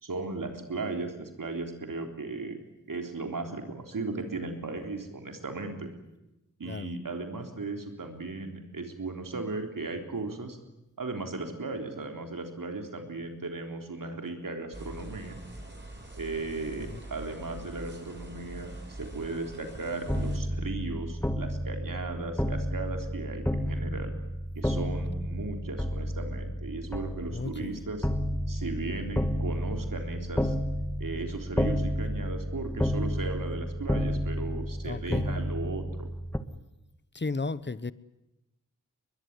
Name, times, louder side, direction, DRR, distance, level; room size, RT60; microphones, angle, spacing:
voice 1, 0.0-2.6 2.9-5.9 6.6-10.6 11.0-15.4 16.2-24.1 24.6-28.1 28.5-30.5 31.0-36.1, right 3 dB, 85° right, 3.8 m, -36 dB
sound 1, 14.7-20.4, right 1 dB, 35° right, 6.6 m, -44 dB
sound 2, 20.1-36.4, equal, 5° left, 2.1 m, -31 dB
voice 2, 27.3-27.8 34.8-35.3 37.1-37.9, left 3 dB, 35° left, 1.1 m, -34 dB
22.5 x 22.0 x 9.7 m
cardioid pair, 45°, 32 cm